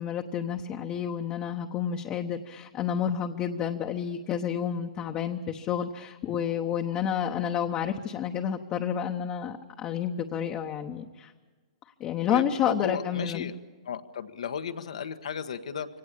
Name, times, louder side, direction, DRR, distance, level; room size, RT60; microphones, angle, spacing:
voice 1, 0.0-11.3 12.0-13.5, left 8 dB, 30° left, 3 dB, 1.0 m, -30 dB
voice 2, 12.3-13.5 13.8-15.9, left 7 dB, 80° left, 8 dB, 1.4 m, -34 dB
23.5 x 18.0 x 8.5 m, 1.4 s
hypercardioid pair, 140°, 3 cm